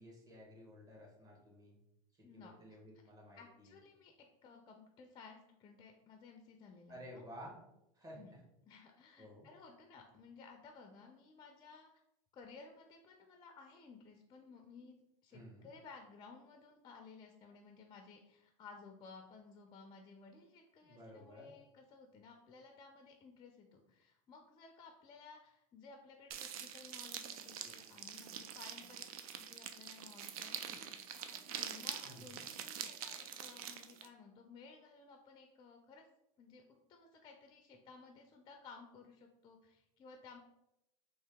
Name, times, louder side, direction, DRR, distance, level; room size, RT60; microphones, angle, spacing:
voice 1, 0.0-1.8 2.2-3.8 6.9-7.6 7.9-8.4 9.2-9.5 15.3-15.7 20.8-21.6 32.0-32.4, equal, 20° right, -2 dB, 1.2 m, -54 dB
voice 2, 2.2-2.8 3.4-4.1 4.4-7.2 8.2-8.3 8.6-11.9 12.3-29.1 29.4-36.1 36.4-36.6 36.9-40.4, left 4 dB, 25° left, 3 dB, 0.4 m, -57 dB
sound 1, 26.3-34.1, right 9 dB, 80° right, 0.4 m, -45 dB
2.9 x 2.7 x 3.5 m, 0.85 s
supercardioid pair, 115°, 18 cm